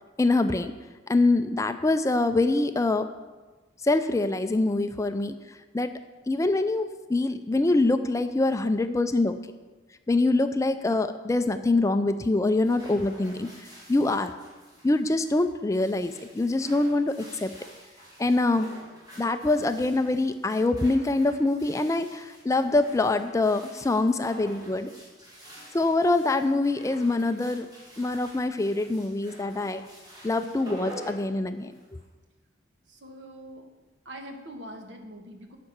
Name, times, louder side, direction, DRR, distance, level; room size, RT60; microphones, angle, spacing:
voice 1, 0.2-0.7 1.1-3.1 3.8-6.0 6.3-9.4 10.1-14.3 14.8-17.5 18.2-18.7 19.2-24.9 25.7-27.7 28.0-29.8 30.2-31.7, left 2 dB, 15° left, 9 dB, 0.4 m, -24 dB
sound 1, 12.5-32.1, right 1 dB, 20° right, 2.6 m, -48 dB
voice 2, 32.9-33.7 34.0-35.6, equal, 65° right, 4 dB, 1.4 m, -43 dB
9.7 x 5.9 x 7.9 m, 1.3 s
head